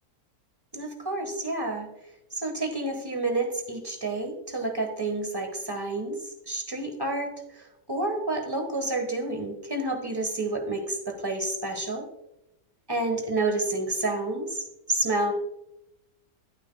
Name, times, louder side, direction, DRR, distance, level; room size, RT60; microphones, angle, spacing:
voice 1, 0.7-1.9 2.4-6.2 6.5-7.6 7.9-12.0 12.9-15.3, right 2 dB, 15° right, 4 dB, 1.3 m, -29 dB
12.0 x 9.0 x 2.3 m, 0.84 s
omnidirectional pair, 1.8 m